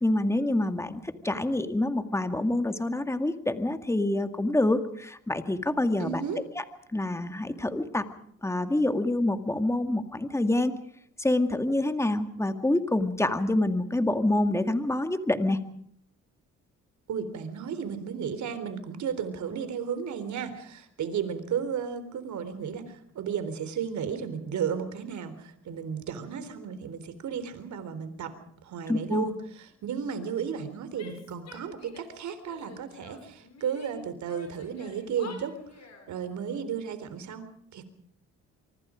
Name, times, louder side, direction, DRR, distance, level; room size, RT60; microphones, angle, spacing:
voice 1, 0.0-6.2 6.6-6.7 6.9-8.0 8.4-10.7 11.2-15.6 28.9-29.3, left 1 dB, 10° left, 8 dB, 2.1 m, -26 dB
voice 2, 6.0-6.4 17.1-28.4 28.6-35.6 36.1-37.8, right 7 dB, 70° right, 11 dB, 3.9 m, -34 dB
Female speech woman speaking / Yell, 31.0-32.2 32.4-33.9 34.2-36.1, left 5 dB, 60° left, 7.9 m, -49 dB
25.0 x 24.5 x 5.1 m, 0.66 s
cardioid pair, 90°, 30 cm